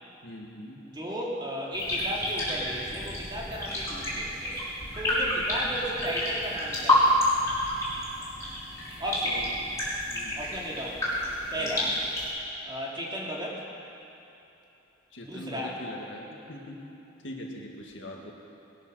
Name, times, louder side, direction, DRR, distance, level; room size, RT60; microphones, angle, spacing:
voice 1, 0.2-0.8 5.2-5.4 9.2-9.5 10.1-10.4 11.6-11.9 15.1-16.8 17.2-18.3, left 1 dB, 75° left, -1 dB, 2.1 m, -42 dB
voice 2, 0.9-4.6 4.9-7.2 9.0-9.5 10.3-11.2 11.5-12.0 12.6-13.7 15.2-15.8, equal, 25° right, -3 dB, 2.4 m, -35 dB
sound 1, 1.7-12.3, left 1 dB, 15° left, 4.5 m, -29 dB
20.0 x 10.5 x 6.4 m, 2.9 s
head